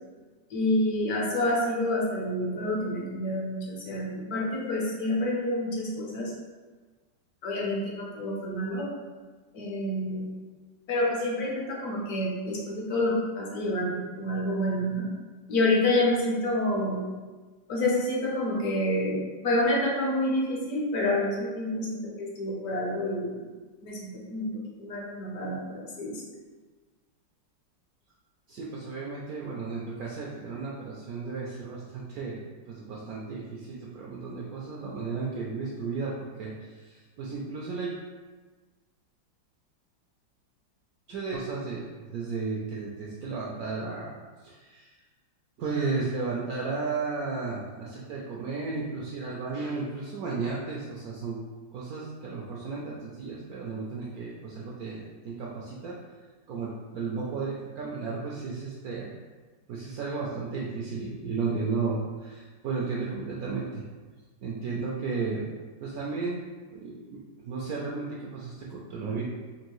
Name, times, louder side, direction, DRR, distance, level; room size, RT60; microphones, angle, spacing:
voice 1, 0.5-6.3 7.4-8.9 9.5-10.3 10.9-15.1 15.5-17.0 17.7-23.5 23.8-26.1, left 1 dB, 60° left, -3 dB, 1.1 m, -28 dB
voice 2, 28.5-37.9 41.1-41.9 42.1-44.2 44.4-44.9 45.6-51.4 51.7-56.0 56.5-59.2 59.7-63.8 64.4-65.5 65.8-66.4 66.7-67.2 67.4-69.2, right 4 dB, 75° right, -4 dB, 0.8 m, -34 dB
4.5 x 2.6 x 3.0 m, 1.3 s
omnidirectional pair, 2.0 m